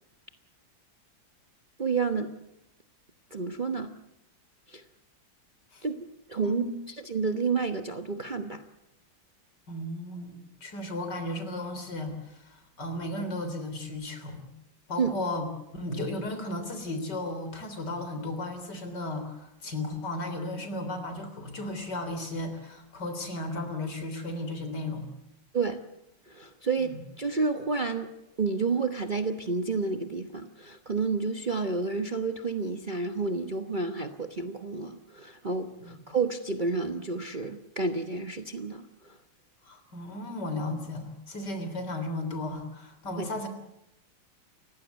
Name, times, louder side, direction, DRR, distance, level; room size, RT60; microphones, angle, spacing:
voice 1, 1.8-2.3 3.3-3.9 4.7-4.8 5.8-8.6 15.0-15.1 25.5-25.8 26.3-28.1 28.4-39.2 43.2-43.3, right 4 dB, 30° right, 6 dB, 1.0 m, -30 dB
voice 2, 6.4-6.8 9.7-14.5 14.9-15.5 15.7-25.1 26.8-26.9 35.8-36.0 39.6-43.5, left 1 dB, 60° left, 8 dB, 4.1 m, -35 dB
30.0 x 16.0 x 8.1 m, 0.84 s
omnidirectional pair, 2.0 m